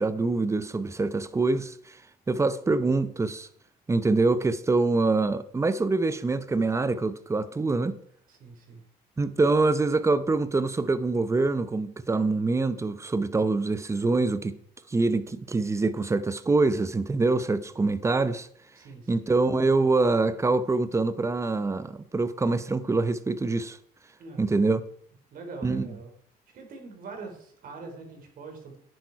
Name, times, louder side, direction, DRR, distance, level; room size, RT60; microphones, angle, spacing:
voice 1, 0.0-2.0 2.3-3.5 3.9-8.0 9.2-14.6 14.9-18.5 19.1-23.8 24.4-24.8 25.6-25.9, right 3 dB, 15° right, 0.8 m, -25 dB
voice 2, 8.3-8.8 18.8-19.3 24.2-24.7 25.3-26.1 26.5-28.8, right 4 dB, 55° right, 4.1 m, -43 dB
10.5 x 9.4 x 4.7 m
cardioid pair, 110°, 17 cm